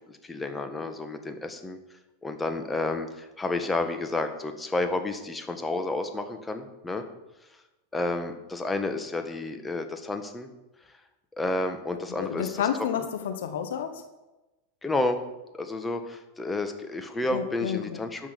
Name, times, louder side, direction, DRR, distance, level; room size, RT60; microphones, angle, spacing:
voice 1, 0.0-1.8 2.2-7.0 7.9-10.5 11.4-12.6 12.9-13.0 14.8-15.2 15.5-18.3, left 2 dB, 10° left, 6 dB, 1.5 m, -30 dB
voice 2, 12.2-14.0 17.3-18.0, left 9 dB, 70° left, 8 dB, 1.1 m, -30 dB
12.5 x 6.4 x 6.9 m, 1.1 s
figure-of-eight pair, 90°, 0 cm